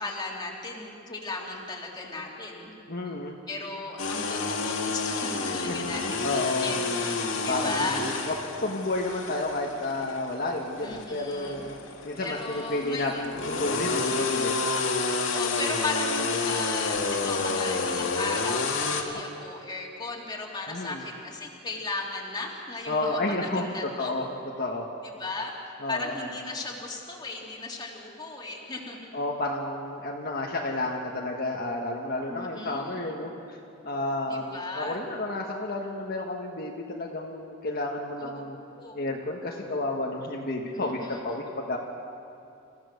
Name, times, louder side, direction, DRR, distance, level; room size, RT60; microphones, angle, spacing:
voice 1, 0.0-2.7 3.5-8.0 10.8-11.6 12.2-13.3 13.9-14.5 15.0-24.2 25.0-25.5 25.9-29.1 32.3-33.2 34.3-35.0 38.2-38.4 38.7-39.1 40.7-41.2, left 3 dB, 20° left, -2 dB, 2.8 m, -36 dB
voice 2, 2.9-3.3 5.7-6.7 7.5-8.3 8.6-11.8 12.0-14.7 19.1-19.2 20.7-21.0 22.9-24.3 24.6-24.9 25.8-26.1 29.1-33.6 33.8-38.6 38.9-41.8, left 2 dB, 50° left, -1 dB, 1.6 m, -31 dB
sound 1, 4.0-19.0, left 3 dB, 75° left, 2.2 m, -30 dB
28.0 x 15.0 x 6.7 m, 2.7 s
head